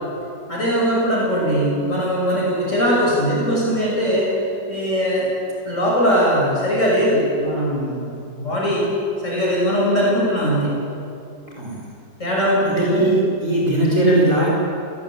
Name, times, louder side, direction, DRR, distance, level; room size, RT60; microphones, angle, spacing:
voice 1, 0.5-4.3 4.7-5.3 5.6-8.1 8.4-8.9 9.2-10.7 12.2-13.0, equal, 40° left, -5 dB, 6.8 m, -20 dB
voice 2, 11.6-11.9 12.6-14.5, right 1 dB, 45° right, -4 dB, 5.4 m, -19 dB
28.0 x 18.0 x 9.0 m, 2.6 s
omnidirectional pair, 1.9 m